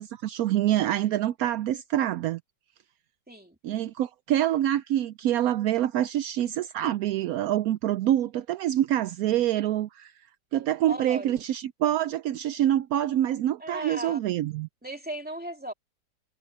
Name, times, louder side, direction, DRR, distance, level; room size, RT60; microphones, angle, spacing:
voice 1, 0.0-2.4 3.6-10.1 10.5-14.7, right 12 dB, 80° right, 0.8 m, -26 dB
voice 2, 10.9-11.4 13.6-14.3 14.8-15.7, right 1 dB, 5° right, 2.7 m, -36 dB
omnidirectional pair, 2.0 m